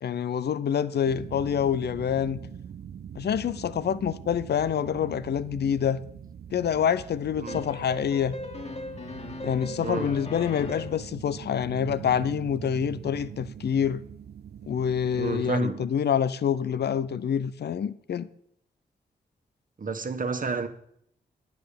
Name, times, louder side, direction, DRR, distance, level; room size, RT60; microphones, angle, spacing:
voice 1, 0.0-2.4 3.1-6.0 6.5-8.4 9.4-14.0 14.7-18.3, left 8 dB, 70° left, 0.7 m, -27 dB
sound 1, 1.0-15.5, right 9 dB, 65° right, 0.6 m, -42 dB
sound 2, 7.5-11.1, left 2 dB, 35° left, 2.0 m, -38 dB
voice 2, 15.2-15.9 19.8-20.7, right 4 dB, 50° right, 1.5 m, -30 dB
9.9 x 8.2 x 7.0 m
supercardioid pair, 45°, 18 cm